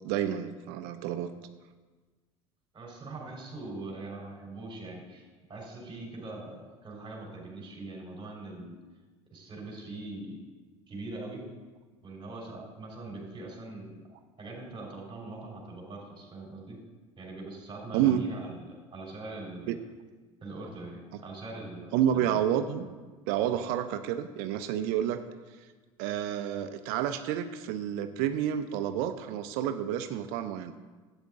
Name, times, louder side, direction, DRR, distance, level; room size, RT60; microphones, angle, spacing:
voice 1, 0.0-1.3 17.9-18.2 19.7-19.8 21.9-22.9 23.3-25.2 26.0-30.7, right 10 dB, 65° right, 9 dB, 0.7 m, -29 dB
voice 2, 2.7-8.8 9.3-10.4 10.9-11.4 12.0-14.0 14.4-16.8 17.2-19.8 20.4-22.4, right 2 dB, 30° right, -1 dB, 3.9 m, -42 dB
12.0 x 8.9 x 3.7 m, 1.3 s
hypercardioid pair, 70°, 17 cm